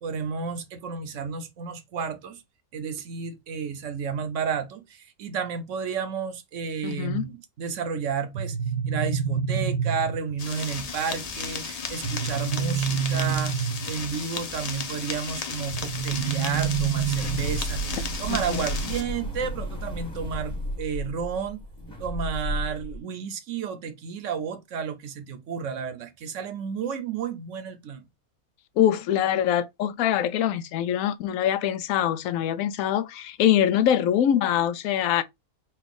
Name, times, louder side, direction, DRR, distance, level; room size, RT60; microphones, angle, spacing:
voice 1, 0.0-2.4 2.7-8.6 8.9-21.6 22.0-28.0, right 6 dB, 60° right, 1.0 m, -32 dB
voice 2, 6.8-7.3 17.9-18.0 18.3-18.6 28.8-35.2, left 10 dB, 70° left, 0.9 m, -24 dB
sound 1, 8.3-10.4 12.0-14.1 15.7-17.7, right 7 dB, 80° right, 1.1 m, -27 dB
sound 2, 10.4-19.0, left 5 dB, 55° left, 0.4 m, -34 dB
sound 3, 16.6-23.0, right 1 dB, 5° left, 1.2 m, -33 dB
4.3 x 2.4 x 3.6 m
omnidirectional pair, 1.6 m